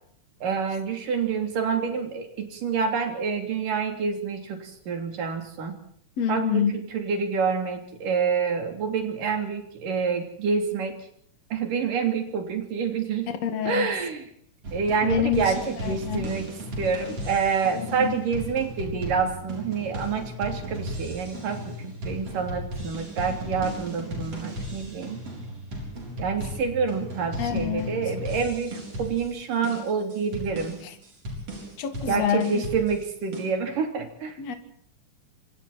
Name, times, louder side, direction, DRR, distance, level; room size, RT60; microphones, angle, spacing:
voice 1, 0.4-5.8 6.3-10.9 11.5-13.3 13.6-14.2 14.7-16.5 16.8-25.2 26.2-30.7 32.1-34.4, right 6 dB, 85° right, 5 dB, 5.0 m, -27 dB
voice 2, 6.2-6.7 13.4-13.9 15.0-15.5 15.8-16.3 17.8-18.2 27.4-28.0 31.8-32.6 34.4-34.6, left 8 dB, 55° left, 7 dB, 3.1 m, -27 dB
sound 1, 14.6-33.4, equal, 50° right, 8.0 m, -36 dB
27.0 x 25.5 x 4.3 m, 0.62 s
omnidirectional pair, 3.7 m